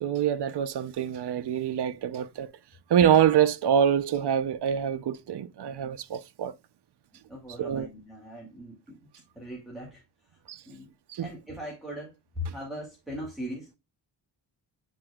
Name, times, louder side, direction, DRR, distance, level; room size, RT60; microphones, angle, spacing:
voice 1, 0.0-2.5 2.9-6.5 7.6-7.9 10.5-10.6 11.1-11.3, right 9 dB, 60° right, 0.7 m, -25 dB
voice 2, 7.3-9.0 9.4-10.0 10.7-10.9 11.2-13.8, equal, ahead, 2.3 m, -39 dB
9.5 x 4.5 x 2.3 m
wide cardioid pair, 125°, 45 cm